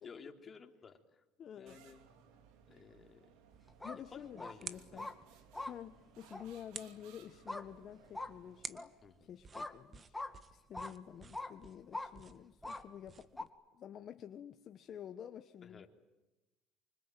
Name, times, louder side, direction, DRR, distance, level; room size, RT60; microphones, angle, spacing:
voice 1, 0.0-1.2 1.6-2.0 2.7-3.3 3.9-5.0 9.0-9.3 15.6-15.9, left 5 dB, 30° left, 5 dB, 3.2 m, -55 dB
voice 2, 1.4-1.8 3.8-5.1 5.6-8.9 9.2-10.2 10.5-15.9, left 9 dB, 45° left, 9 dB, 1.3 m, -50 dB
sound 1, 1.7-9.1, right 7 dB, 75° right, 3.6 m, -63 dB
sound 2, 3.5-13.5, right 5 dB, 30° right, 1.6 m, -54 dB
sound 3, 3.7-4.0 4.4-4.5 5.0-5.1 5.5-5.7 6.3-6.4 7.5-7.6 8.1-8.3 8.7-8.9 9.5-9.7 10.1-10.3 10.7-10.9 11.3-11.5 11.9-12.1 12.6-12.8 13.4-13.5, left 2 dB, 10° left, 2.4 m, -42 dB
25.5 x 25.5 x 9.2 m, 1.1 s
supercardioid pair, 105°, 0 cm